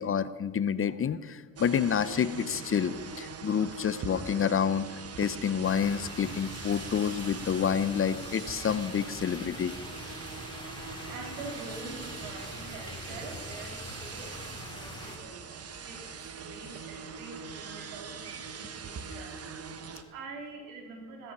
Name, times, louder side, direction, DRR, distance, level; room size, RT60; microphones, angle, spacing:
voice 1, 0.0-9.7, left 7 dB, 30° left, 15 dB, 0.8 m, -29 dB
sound 1, 1.6-20.0, right 5 dB, 35° right, 1.5 m, -42 dB
sound 2, 5.6-15.2, left 2 dB, 10° left, 3.4 m, -44 dB
voice 2, 10.8-21.3, right 3 dB, 90° right, 1 dB, 4.3 m, -45 dB
16.0 x 14.0 x 5.6 m, 1.3 s
supercardioid pair, 80°, 41 cm